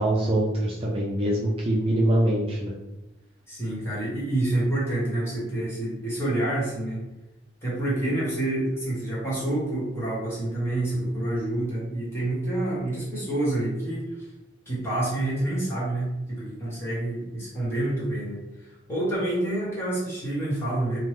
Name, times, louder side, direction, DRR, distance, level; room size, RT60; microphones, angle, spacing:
voice 1, 0.0-2.8, right 1 dB, 30° right, -4 dB, 0.4 m, -24 dB
voice 2, 3.5-7.0 7.6-14.1 14.7-18.4 18.9-21.0, right 1 dB, 15° left, -7 dB, 1.1 m, -28 dB
2.9 x 2.1 x 3.3 m, 0.98 s
head